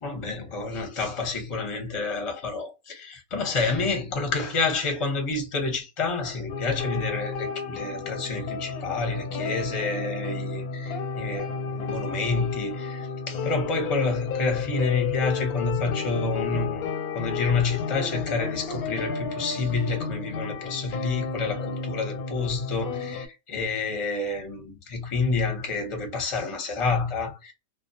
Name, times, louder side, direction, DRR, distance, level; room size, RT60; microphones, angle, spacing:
voice 1, 0.0-27.5, left 3 dB, 30° left, 0.7 m, -29 dB
sound 1, 6.5-23.3, left 5 dB, 90° left, 1.1 m, -32 dB
2.4 x 2.2 x 2.5 m
omnidirectional pair, 1.5 m